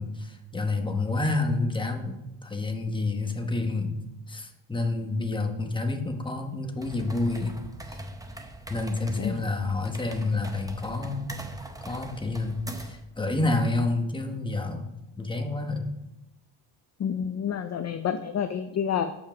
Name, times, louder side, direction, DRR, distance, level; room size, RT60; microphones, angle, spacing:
voice 1, 0.0-4.0 4.3-7.6 7.9-8.0 8.7-11.4 11.8-15.9, left 2 dB, 10° left, 4 dB, 1.0 m, -29 dB
sound 1, 6.7-13.1, right 1 dB, 10° right, 0.6 m, -41 dB
voice 2, 17.0-19.2, left 8 dB, 35° left, 8 dB, 0.4 m, -29 dB
7.1 x 5.4 x 5.9 m, 0.94 s
cardioid pair, 125°, 46 cm